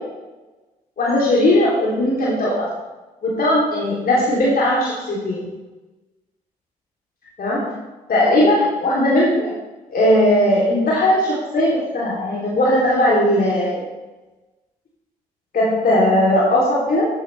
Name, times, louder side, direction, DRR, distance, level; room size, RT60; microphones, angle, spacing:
voice 1, 1.0-2.7 3.2-5.4 7.4-7.7 8.1-9.5 9.9-13.8 15.5-17.1, left 1 dB, 50° left, -6 dB, 3.1 m, -18 dB
13.0 x 11.0 x 3.3 m, 1.2 s
figure-of-eight pair, 40°, 20 cm